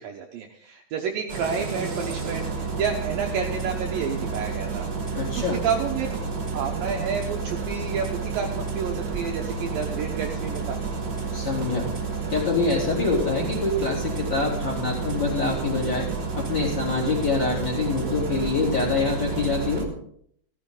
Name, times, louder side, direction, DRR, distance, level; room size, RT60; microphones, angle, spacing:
voice 1, 0.0-4.9 5.3-6.1 6.5-10.8, right 6 dB, 90° right, 2 dB, 2.0 m, -30 dB
Engine starting, 1.3-19.8, right 4 dB, 50° right, 1.3 m, -30 dB
voice 2, 5.1-5.6 11.3-11.9 12.3-16.1 16.3-19.9, left 3 dB, 25° left, -2 dB, 3.3 m, -25 dB
16.5 x 12.5 x 3.8 m, 0.68 s
omnidirectional pair, 5.4 m